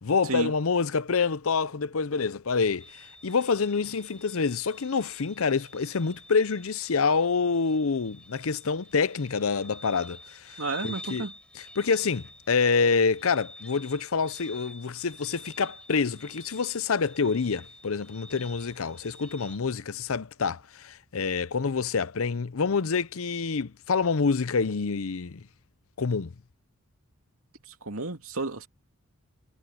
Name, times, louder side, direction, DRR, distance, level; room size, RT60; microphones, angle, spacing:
voice 1, 0.0-10.6 10.8-11.2 11.8-25.4 26.0-26.3, left 5 dB, 75° left, 0.6 m, -27 dB
sound 1, 2.8-19.6, left 1 dB, 5° left, 5.9 m, -48 dB
voice 2, 10.6-11.3 27.7-28.7, right 3 dB, 75° right, 2.7 m, -32 dB
head